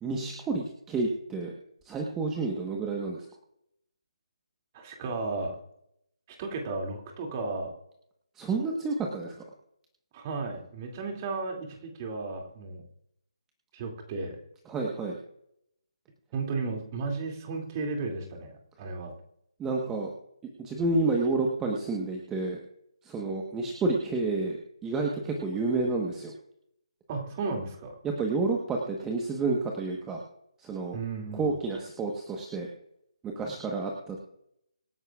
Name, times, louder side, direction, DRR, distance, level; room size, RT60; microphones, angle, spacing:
voice 1, 0.0-1.5 1.8-3.3 8.4-9.3 14.7-15.2 19.6-20.1 20.6-22.6 23.0-26.3 28.0-30.2 30.6-31.0 31.3-32.7 33.4-34.2, right 3 dB, 10° right, 0 dB, 1.3 m, -30 dB
voice 2, 4.7-5.6 6.4-7.7 10.1-12.8 13.7-14.4 16.3-19.1 27.1-28.0 30.9-31.5, right 3 dB, 30° right, 1 dB, 2.6 m, -34 dB
26.0 x 11.0 x 2.5 m, 0.77 s
figure-of-eight pair, 150°, 3 cm